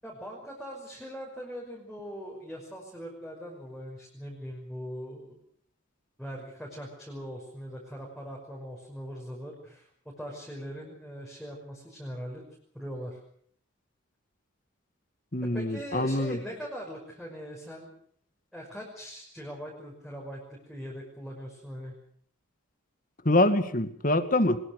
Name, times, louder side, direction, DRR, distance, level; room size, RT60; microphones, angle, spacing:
voice 1, 0.0-5.4 6.2-12.4 12.7-13.2 15.4-17.9 18.5-21.9, equal, ahead, -3 dB, 5.7 m, -41 dB
voice 2, 15.3-16.4 23.3-24.6, left 1 dB, 40° left, 10 dB, 2.0 m, -25 dB
23.5 x 21.5 x 6.5 m, 0.62 s
head